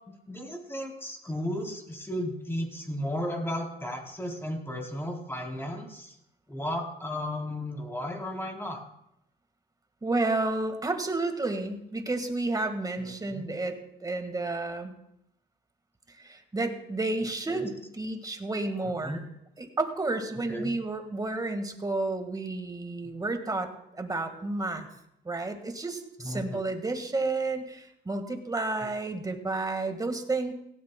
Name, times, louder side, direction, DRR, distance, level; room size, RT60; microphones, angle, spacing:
voice 1, 0.1-6.1 6.5-8.8 13.0-13.4 17.2-17.7 19.0-19.2 20.5-20.7 26.2-26.6, left 1 dB, 10° left, 1 dB, 3.2 m, -34 dB
voice 2, 10.0-14.9 16.2-19.2 19.6-24.9 25.2-30.5, right 2 dB, 20° right, 6 dB, 1.6 m, -31 dB
17.5 x 15.5 x 2.2 m, 0.80 s
cardioid pair, 90°, 20 cm